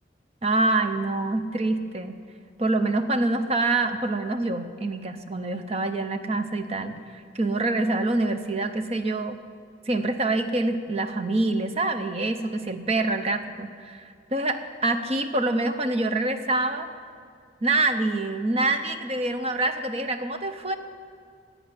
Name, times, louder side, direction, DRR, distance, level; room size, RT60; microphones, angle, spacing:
voice 1, 0.4-2.2 2.6-9.4 9.9-16.9 17.6-20.8, right 2 dB, 30° right, 9 dB, 0.7 m, -26 dB
10.5 x 8.6 x 9.6 m, 2.3 s
head